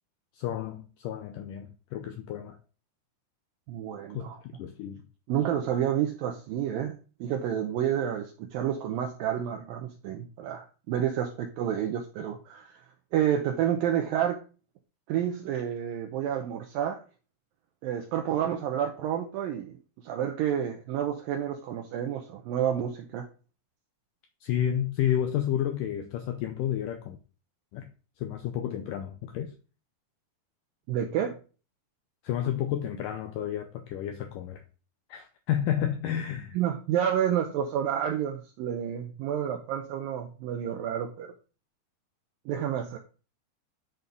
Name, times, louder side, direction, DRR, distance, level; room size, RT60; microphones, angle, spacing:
voice 1, 0.3-2.6 4.1-5.0 24.4-27.2 27.7-27.9 28.2-29.5 32.2-34.6 35.1-36.6, left 10 dB, 80° left, 1.9 m, -31 dB
voice 2, 3.7-4.4 5.3-12.8 13.1-14.4 15.1-17.0 17.8-19.8 20.0-23.3 30.9-31.4 36.5-41.3 42.5-43.0, right 10 dB, 75° right, 2.3 m, -29 dB
10.5 x 4.2 x 5.3 m
omnidirectional pair, 4.7 m